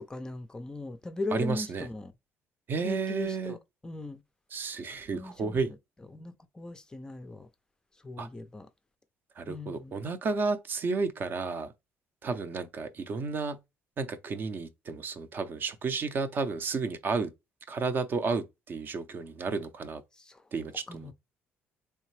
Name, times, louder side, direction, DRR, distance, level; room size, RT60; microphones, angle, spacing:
voice 1, 0.0-2.1 2.8-3.6 3.8-4.2 5.1-5.8 6.1-7.5 8.0-8.7 9.5-10.0 20.1-20.4 20.9-21.1, left 2 dB, 15° left, 0.4 m, -38 dB
voice 2, 1.3-1.9 2.7-3.6 4.5-5.7 8.2-8.3 9.4-11.7 12.2-13.6 14.0-17.3 17.7-20.0 20.5-21.1, right 4 dB, 40° right, 0.5 m, -32 dB
3.6 x 3.3 x 3.2 m
cardioid pair, 125°, 5 cm